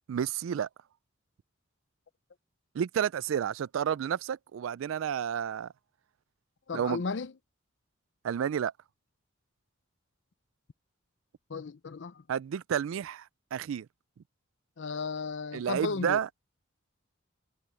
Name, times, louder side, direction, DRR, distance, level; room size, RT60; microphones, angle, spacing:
voice 1, 0.1-0.7 2.7-5.7 6.7-7.0 8.2-8.7 12.3-13.9 15.5-16.3, right 8 dB, 85° right, 0.3 m, -31 dB
voice 2, 6.7-7.3 11.5-12.2 14.8-16.2, left 4 dB, 65° left, 0.5 m, -34 dB
head